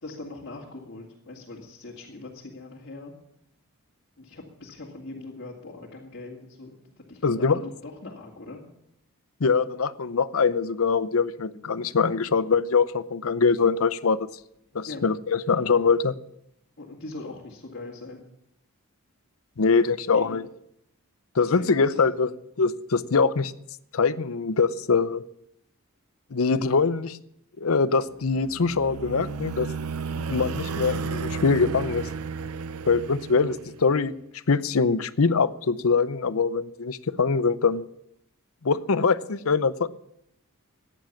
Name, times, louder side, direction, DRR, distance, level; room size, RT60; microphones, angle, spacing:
voice 1, 0.0-3.1 4.2-8.6 14.9-15.0 16.8-18.2 20.1-20.4 21.4-22.0, left 2 dB, 55° left, -3 dB, 2.3 m, -41 dB
voice 2, 7.2-7.6 9.4-14.3 14.7-16.1 19.6-20.5 21.3-22.3 22.6-23.5 23.9-25.2 26.3-27.2 27.6-29.7 30.3-32.1 32.9-34.1 34.5-37.9 38.6-39.9, left 4 dB, 70° left, 15 dB, 0.7 m, -23 dB
sound 1, 28.2-33.9, right 5 dB, 80° right, 0.6 m, -33 dB
15.5 x 10.0 x 7.3 m, 0.77 s
head